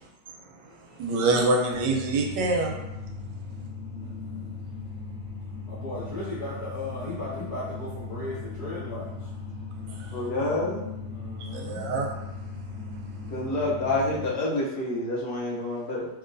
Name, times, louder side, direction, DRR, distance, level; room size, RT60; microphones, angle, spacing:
voice 1, 1.0-2.7 10.0-10.1 11.4-12.1, right 2 dB, 85° right, 1 dB, 1.3 m, -25 dB
sound 1, 1.7-14.3, left 4 dB, 40° left, 1.1 m, -38 dB
voice 2, 5.7-9.1 11.1-11.9 13.6-13.8, left 1 dB, 15° right, -14 dB, 1.0 m, -36 dB
voice 3, 10.1-10.9 13.3-16.1, left 2 dB, 70° left, -3 dB, 1.2 m, -28 dB
3.0 x 2.9 x 2.5 m, 0.95 s
omnidirectional pair, 1.9 m